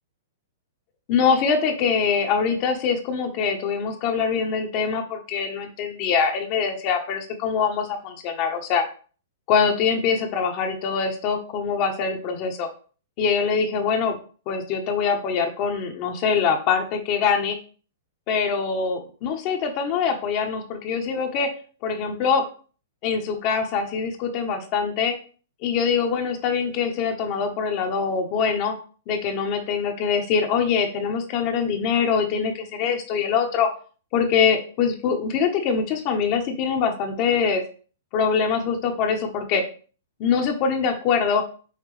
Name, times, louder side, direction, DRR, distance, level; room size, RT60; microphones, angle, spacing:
voice 1, 1.1-8.8 9.5-12.7 13.2-14.2 14.5-17.6 18.3-21.5 21.8-22.4 23.0-25.2 25.6-28.7 29.1-33.7 34.1-37.6 38.1-39.6 40.2-41.4, left 6 dB, 40° left, 4 dB, 1.0 m, -23 dB
5.7 x 2.6 x 3.2 m, 0.39 s
hypercardioid pair, 130°, 0 cm